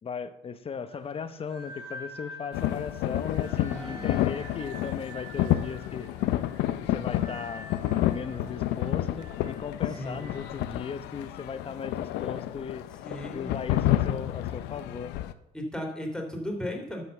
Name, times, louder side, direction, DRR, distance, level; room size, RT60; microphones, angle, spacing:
voice 1, 0.0-6.1 6.8-7.7 8.1-12.9 13.3-15.1, left 6 dB, 35° left, 11 dB, 1.0 m, -37 dB
sound 1, 0.9-10.6, right 1 dB, 25° right, 4.0 m, -47 dB
sound 2, 2.5-15.3, left 13 dB, 85° left, 0.6 m, -30 dB
voice 2, 3.7-4.1 10.0-10.4 11.5-11.8 13.0-13.5 15.5-17.0, left 1 dB, 5° left, 1 dB, 2.8 m, -36 dB
12.0 x 5.5 x 6.9 m, 0.84 s
cardioid pair, 110°, 17 cm